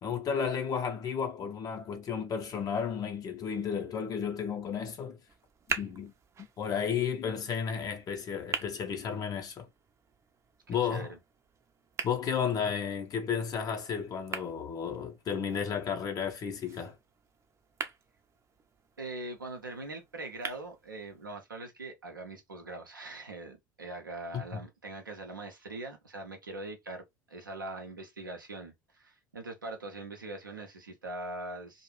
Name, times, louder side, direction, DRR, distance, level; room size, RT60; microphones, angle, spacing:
voice 1, 0.0-5.2 5.8-6.1 6.6-9.7 10.7-11.1 12.0-16.9 24.3-24.6, left 7 dB, 35° left, 0.6 m, -33 dB
sound 1, 5.3-21.3, right 6 dB, 30° right, 0.5 m, -44 dB
voice 2, 10.7-11.2 19.0-31.8, right 2 dB, 90° right, 0.5 m, -42 dB
2.4 x 2.0 x 3.0 m
figure-of-eight pair, 70°, 11 cm